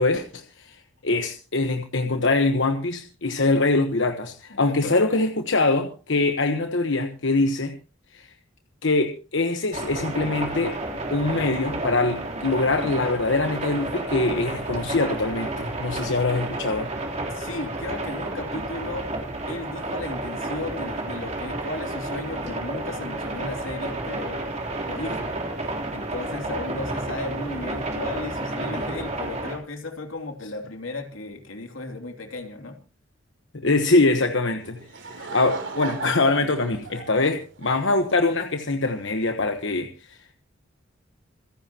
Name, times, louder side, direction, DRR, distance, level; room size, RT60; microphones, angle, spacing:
voice 1, 0.0-7.8 8.1-8.3 8.8-10.8 11.1-16.9 33.5-34.8 35.1-37.4 37.6-40.2, left 3 dB, 65° left, 6 dB, 1.2 m, -23 dB
voice 2, 4.5-5.1 17.3-19.1 19.4-24.5 24.9-25.3 25.9-32.8 37.1-37.4, left 2 dB, 85° left, 4 dB, 2.9 m, -35 dB
sound 1, 9.7-29.6, right 2 dB, 35° right, 3.5 m, -31 dB
Laughter / Crowd, 34.6-38.4, right 4 dB, 65° right, 3.4 m, -36 dB
27.0 x 10.5 x 3.0 m, 0.36 s
head